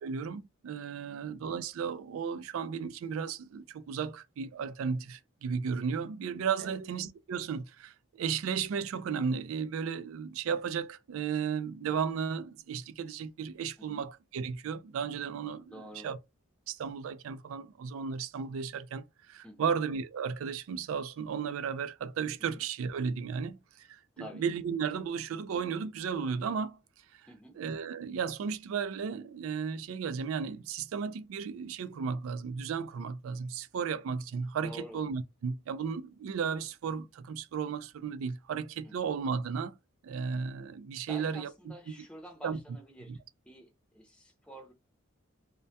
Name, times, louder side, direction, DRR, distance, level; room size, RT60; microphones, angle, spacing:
voice 1, 0.0-15.8 16.0-16.2 16.7-26.8 27.1-27.2 27.6-39.8 40.0-41.5 41.9-42.0 42.4-42.6 43.1-43.2, right 6 dB, 80° right, 0.3 m, -34 dB
voice 2, 15.7-16.1 19.4-19.7 22.4-22.6 24.2-24.4 27.3-27.6 34.6-35.0 38.8-39.1 41.1-43.2 43.5-44.7, equal, 5° left, 0.5 m, -49 dB
2.2 x 2.1 x 2.6 m
head